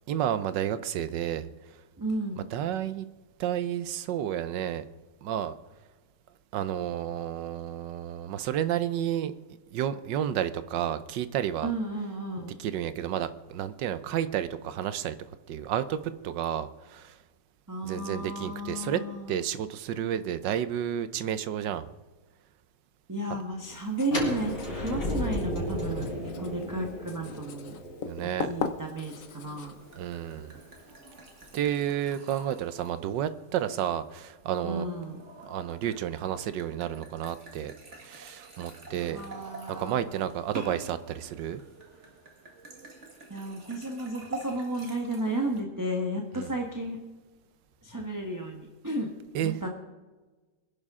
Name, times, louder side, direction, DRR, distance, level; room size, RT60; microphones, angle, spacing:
voice 1, 0.1-1.8 2.4-3.1 3.4-4.8 5.2-5.5 6.5-9.3 9.7-11.7 12.6-15.2 15.5-17.2 17.8-19.0 19.3-21.9 23.3-23.4 28.0-28.5 30.0-30.6 31.5-34.9 35.4-39.4 39.7-41.6 46.3-46.5 49.3-49.6, right 10 dB, 80° right, 13 dB, 1.4 m, -31 dB
voice 2, 2.0-2.5 11.6-12.5 17.7-19.4 23.1-26.1 26.4-27.8 28.4-29.7 34.6-35.2 39.0-40.0 43.3-47.0 47.8-49.1 49.4-49.7, right 1 dB, 10° right, 1 dB, 1.1 m, -33 dB
Writing, 23.6-31.8, left 6 dB, 55° left, 1.1 m, -41 dB
sound 1, 24.0-29.9, equal, 40° left, 5.2 m, -34 dB
sound 2, 29.1-45.6, right 2 dB, 40° right, 2.1 m, -47 dB
24.5 x 11.0 x 3.7 m, 1.3 s
omnidirectional pair, 1.9 m